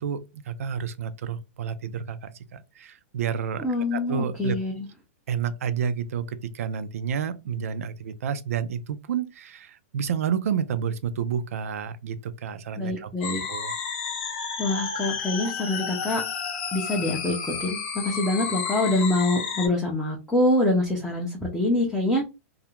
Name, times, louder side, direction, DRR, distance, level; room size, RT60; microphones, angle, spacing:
voice 1, 0.0-3.7 3.9-4.6 5.3-13.1 13.5-13.7, right 7 dB, 80° right, 0.4 m, -30 dB
voice 2, 3.6-4.9 12.8-13.4 14.6-16.2 16.7-22.2, left 1 dB, ahead, 0.4 m, -25 dB
sound 1, 13.2-19.7, left 6 dB, 45° left, 0.8 m, -31 dB
2.4 x 2.1 x 2.9 m
supercardioid pair, 165°, 8 cm